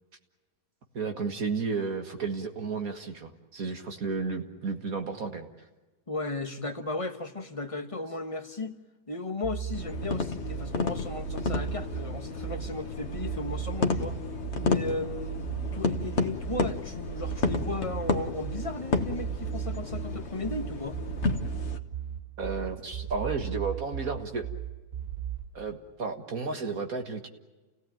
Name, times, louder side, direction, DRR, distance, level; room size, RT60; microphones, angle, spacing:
voice 1, 0.9-5.5 22.4-24.4 25.5-27.3, right 4 dB, 60° right, 5 dB, 2.1 m, -32 dB
voice 2, 6.1-8.8 9.1-14.2 14.6-15.4 15.7-21.0, left 2 dB, 20° left, 7 dB, 1.2 m, -35 dB
sound 1, 9.4-25.4, right 10 dB, 80° right, 3.7 m, -36 dB
sound 2, 9.7-21.8, left 4 dB, 45° left, 1.4 m, -32 dB
29.5 x 16.5 x 9.0 m, 1.2 s
omnidirectional pair, 1.7 m